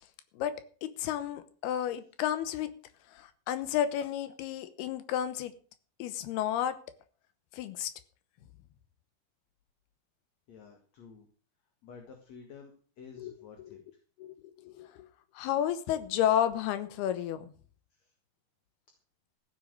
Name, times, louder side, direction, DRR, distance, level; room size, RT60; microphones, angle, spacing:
voice 1, 0.8-2.7 3.1-5.5 6.0-6.8 7.5-7.9 13.2-13.3 13.6-13.8 14.2-15.1 15.3-17.5, left 10 dB, 85° left, 12 dB, 3.0 m, -32 dB
voice 2, 10.5-11.3 11.8-13.8 17.9-18.1, left 6 dB, 50° left, 4 dB, 2.7 m, -51 dB
15.0 x 8.6 x 6.4 m, 0.42 s
omnidirectional pair, 4.5 m